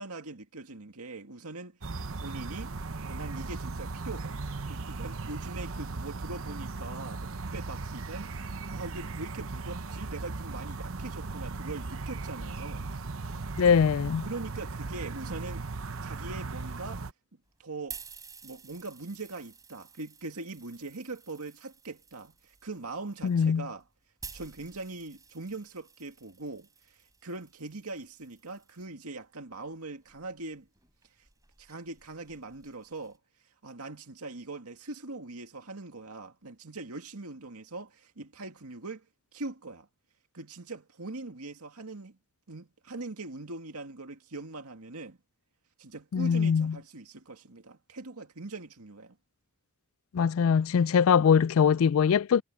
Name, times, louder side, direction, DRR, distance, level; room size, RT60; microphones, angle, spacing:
voice 1, 0.0-1.8 2.1-2.7 3.0-4.4 4.7-12.8 14.2-15.7 16.0-17.1 17.6-18.0 18.4-23.8 24.3-30.7 31.6-33.2 33.6-39.1 39.3-39.9 40.3-42.2 42.5-45.2 45.8-49.1, right 3 dB, 85° right, 2.2 m, -41 dB
sound 1, 1.8-17.1, right 3 dB, 65° right, 0.9 m, -37 dB
voice 2, 13.6-14.3 23.2-23.7 46.1-46.8 50.1-52.4, left 7 dB, 65° left, 0.3 m, -22 dB
sound 2, 17.5-28.9 29.6-33.2, right 5 dB, 15° right, 6.1 m, -52 dB
head